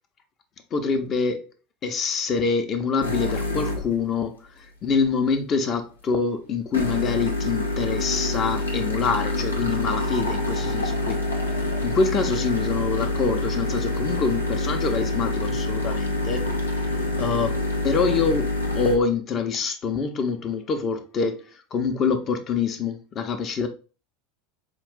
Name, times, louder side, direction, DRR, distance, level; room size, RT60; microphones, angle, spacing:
voice 1, 0.7-1.5 1.8-11.2 11.8-16.4 17.1-17.6 17.8-23.7, left 5 dB, 35° left, 0.7 m, -25 dB
sound 1, 3.0-4.0 6.7-19.0, left 2 dB, 80° left, 0.7 m, -26 dB
4.8 x 2.5 x 3.6 m
figure-of-eight pair, 75°, 0 cm